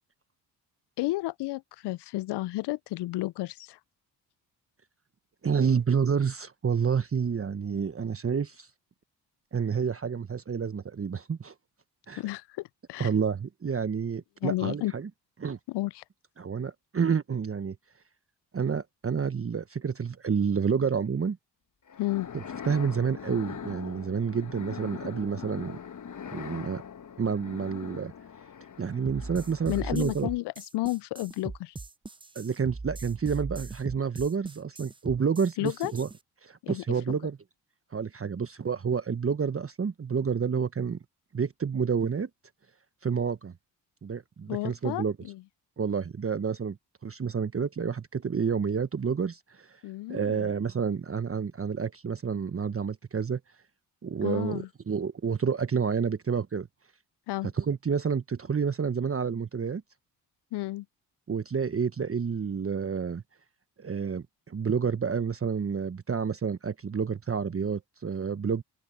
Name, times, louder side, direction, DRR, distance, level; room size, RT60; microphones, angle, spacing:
voice 1, 1.0-3.8 12.1-13.1 14.4-14.9 15.7-16.0 22.0-22.3 29.7-31.7 35.6-35.9 36.6-37.2 44.5-45.4 49.8-50.5 54.2-54.7 57.3-57.5 60.5-60.9, left 18 dB, 60° left, 0.6 m, -32 dB
voice 2, 5.4-8.7 9.5-11.5 12.1-12.2 13.0-15.1 15.4-15.6 16.4-17.8 18.5-21.4 22.6-25.8 26.3-26.8 27.2-28.1 28.8-30.3 32.3-36.1 36.4-37.4 37.9-41.0 41.3-42.3 43.0-43.5 44.0-45.1 45.8-46.8 47.0-49.8 50.1-53.4 54.0-56.7 57.5-59.8 61.3-63.2 63.8-68.6, right 6 dB, 30° right, 1.3 m, -29 dB
sound 1, 21.9-29.9, left 7 dB, 40° left, 1.6 m, -41 dB
sound 2, 29.1-36.2, right 3 dB, 10° right, 0.7 m, -39 dB
open air
hypercardioid pair, 50°, 46 cm